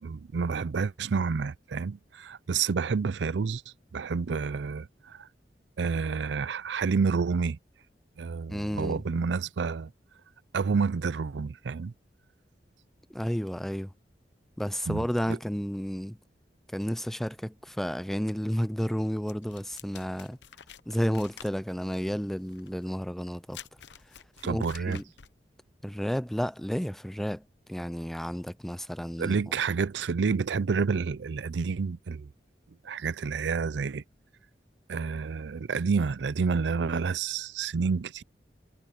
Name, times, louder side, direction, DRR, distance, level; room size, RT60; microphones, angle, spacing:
voice 1, 0.0-3.6 3.9-5.3 5.8-7.6 8.2-9.9 10.5-11.9 14.9-15.4 24.4-25.0 29.2-32.3 32.8-34.0 34.9-38.2, right 5 dB, 90° right, 0.5 m, -29 dB
voice 2, 8.5-9.0 13.1-13.9 14.6-16.2 16.7-20.4 20.9-23.6 24.4-25.0 25.8-27.4 27.7-29.4, equal, ahead, 0.4 m, -31 dB
sound 1, 19.3-25.4, left 9 dB, 85° left, 0.8 m, -49 dB
head